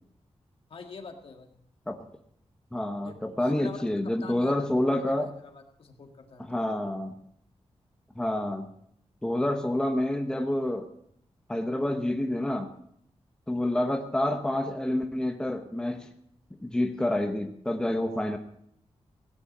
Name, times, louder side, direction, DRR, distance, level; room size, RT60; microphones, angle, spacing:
voice 1, 0.7-1.5 3.0-4.7 5.0-6.6, left 4 dB, 60° left, 3 dB, 1.8 m, -46 dB
voice 2, 2.7-5.3 6.4-7.1 8.2-8.7 9.2-10.9 11.5-12.7 13.5-16.1 16.6-18.4, left 1 dB, 5° left, 4 dB, 0.9 m, -28 dB
17.0 x 10.0 x 5.4 m, 0.68 s
wide cardioid pair, 165°, 11 cm